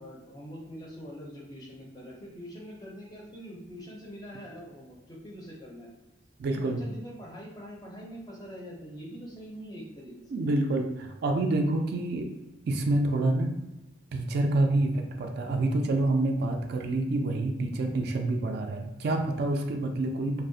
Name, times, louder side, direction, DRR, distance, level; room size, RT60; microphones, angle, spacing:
voice 1, 0.0-5.9 6.5-10.1 10.4-10.5, equal, 20° left, -3 dB, 0.4 m, -44 dB
voice 2, 6.4-6.8 10.3-12.3 12.7-13.6 14.1-20.4, right 2 dB, 55° right, 3 dB, 0.3 m, -27 dB
2.6 x 2.0 x 2.6 m, 1.0 s
head